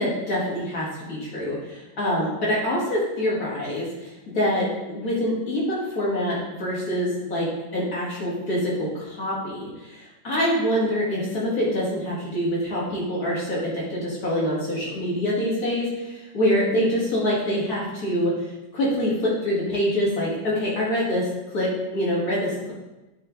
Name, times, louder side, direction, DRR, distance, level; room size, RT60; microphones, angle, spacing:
voice 1, 0.0-7.5 7.7-21.2 21.5-22.7, equal, 55° left, -6 dB, 2.5 m, -25 dB
8.8 x 3.2 x 3.8 m, 1.0 s
omnidirectional pair, 1.9 m